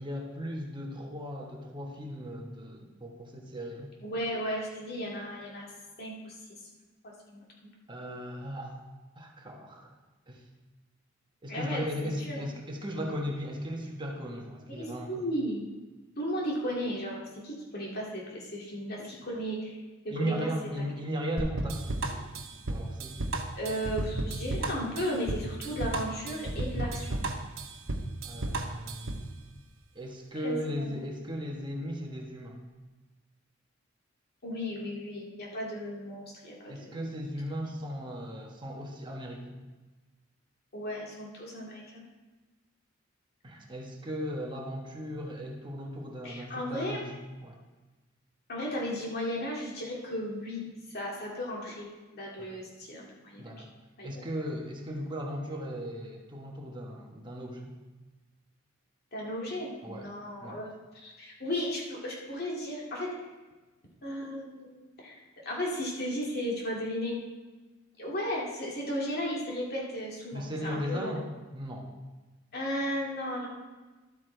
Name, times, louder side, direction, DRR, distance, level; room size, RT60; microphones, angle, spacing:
voice 1, 0.0-3.9 7.9-8.8 9.1-9.9 10.3-10.4 11.4-15.2 20.1-22.3 22.7-23.2 28.2-29.2 29.9-32.6 36.7-39.6 43.4-47.6 52.4-52.6 53.4-53.7 54.0-57.8 59.8-60.1 60.4-60.6 70.3-71.3 71.5-71.9, equal, 25° right, 0 dB, 1.3 m, -37 dB
voice 2, 4.0-5.7 6.0-6.6 7.0-7.5 11.5-12.4 14.8-15.7 16.2-19.8 20.0-20.5 23.6-27.2 30.4-31.0 34.4-37.0 40.7-42.0 46.2-47.0 48.5-53.7 54.0-54.2 59.1-60.7 60.9-63.1 64.0-67.2 68.0-71.2 72.5-73.5, equal, 55° left, -3 dB, 2.4 m, -35 dB
sound 1, 21.4-29.3, right 2 dB, 85° right, 1.0 m, -33 dB
12.0 x 8.5 x 3.4 m, 1.2 s
head